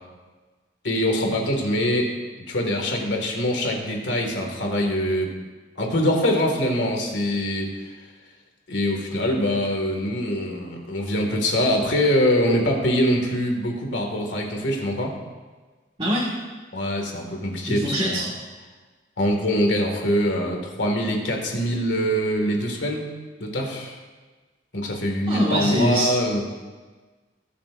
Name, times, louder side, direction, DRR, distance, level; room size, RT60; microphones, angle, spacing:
voice 1, 0.8-2.1 2.5-5.3 5.8-7.7 8.7-15.1 16.7-18.3 19.2-23.1 23.4-23.9 24.7-26.4, equal, 80° left, 1 dB, 2.0 m, -23 dB
voice 2, 16.0-16.3 17.7-18.3 25.3-26.1, equal, 30° right, -7 dB, 1.8 m, -23 dB
19.5 x 7.5 x 2.6 m, 1.3 s
head